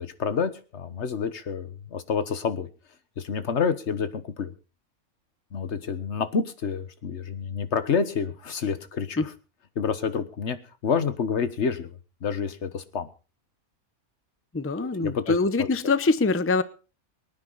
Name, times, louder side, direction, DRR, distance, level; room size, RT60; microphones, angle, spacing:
voice 1, 0.0-2.7 3.2-4.5 5.5-9.2 9.7-10.6 10.8-13.1 14.8-15.7, left 6 dB, 50° left, 1.5 m, -28 dB
voice 2, 14.5-16.6, left 3 dB, 15° left, 0.5 m, -24 dB
24.0 x 9.7 x 4.1 m
omnidirectional pair, 1.5 m